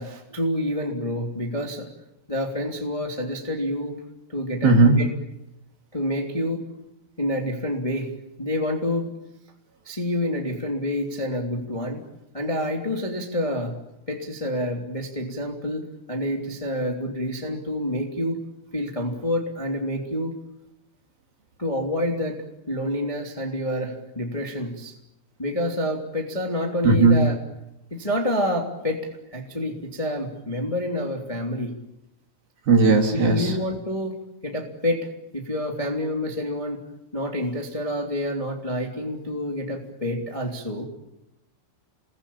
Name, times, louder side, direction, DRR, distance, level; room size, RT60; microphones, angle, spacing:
voice 1, 0.0-1.9 2.3-4.0 4.3-5.1 5.9-6.6 7.2-8.1 8.4-9.1 9.8-12.0 12.3-13.7 14.1-18.4 18.7-20.3 21.6-24.9 25.4-27.4 27.9-31.7 33.1-34.2 34.4-35.1 35.3-36.8 37.1-40.8, left 1 dB, 10° left, 1 dB, 1.9 m, -28 dB
voice 2, 4.6-4.9 26.8-27.2 32.7-33.4, right 3 dB, 50° right, 2 dB, 4.7 m, -16 dB
30.0 x 21.5 x 8.7 m, 0.91 s
omnidirectional pair, 6.0 m